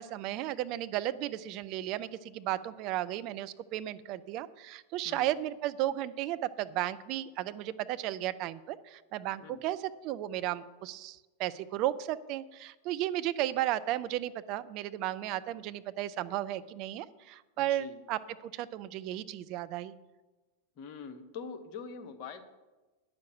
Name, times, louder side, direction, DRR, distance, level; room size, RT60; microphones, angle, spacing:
voice 1, 0.0-9.8 10.0-19.9, right 13 dB, 40° right, 12 dB, 0.5 m, -34 dB
voice 2, 17.6-18.0 20.8-22.5, left 5 dB, 40° left, 6 dB, 1.1 m, -44 dB
9.5 x 6.5 x 7.2 m, 1.2 s
figure-of-eight pair, 90°, 0 cm